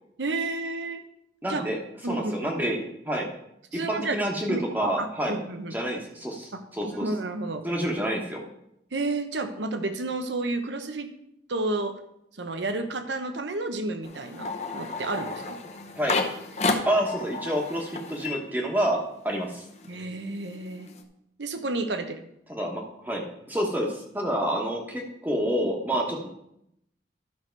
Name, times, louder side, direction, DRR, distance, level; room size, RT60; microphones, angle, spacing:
voice 1, 0.2-1.0 1.5-1.6 2.0-2.5 3.7-4.2 4.5-5.8 6.5-6.6 6.9-7.6 8.9-11.1 11.5-12.0 12.4-15.6 19.9-20.9 21.4-22.2, right 2 dB, 85° right, 8 dB, 1.0 m, -31 dB
voice 2, 1.4-1.8 2.1-3.3 3.9-5.4 5.7-7.1 7.6-8.4 16.0-16.2 16.9-19.6 22.5-26.3, equal, 10° right, 0 dB, 1.2 m, -28 dB
sound 1, 14.0-19.2 19.5-21.0, left 3 dB, 35° left, 0.9 m, -32 dB
11.5 x 6.2 x 4.6 m, 0.78 s
head